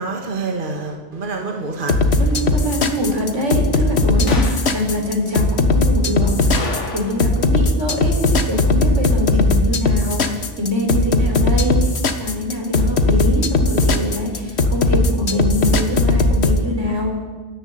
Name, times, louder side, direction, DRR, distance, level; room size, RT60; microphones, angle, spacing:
voice 1, 0.0-2.2 2.7-3.0 4.7-4.8, right 3 dB, 45° right, 3 dB, 2.0 m, -28 dB
sound 1, 1.9-16.6, left 2 dB, 65° left, 1.6 m, -17 dB
voice 2, 2.2-6.3 6.9-11.9 12.2-17.2, left 1 dB, 85° right, 1 dB, 4.6 m, -24 dB
sound 2, 4.3-4.7 6.5-7.4 7.7-7.8 12.8-12.9, left 3 dB, 80° left, 2.4 m, -29 dB
27.0 x 10.5 x 9.3 m, 1.4 s
omnidirectional pair, 1.2 m